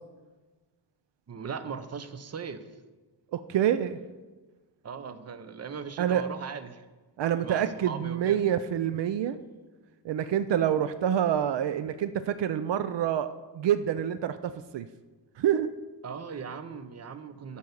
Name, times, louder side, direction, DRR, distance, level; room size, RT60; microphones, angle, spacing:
voice 1, 1.3-2.6 4.8-6.9 7.4-8.4 16.0-17.6, right 6 dB, 35° right, 11 dB, 0.7 m, -39 dB
voice 2, 3.3-4.0 6.0-6.3 7.2-9.4 10.0-14.9 15.4-15.7, right 10 dB, 75° right, 11 dB, 0.5 m, -27 dB
8.4 x 5.6 x 8.0 m, 1.3 s
cardioid pair, 100°, 44 cm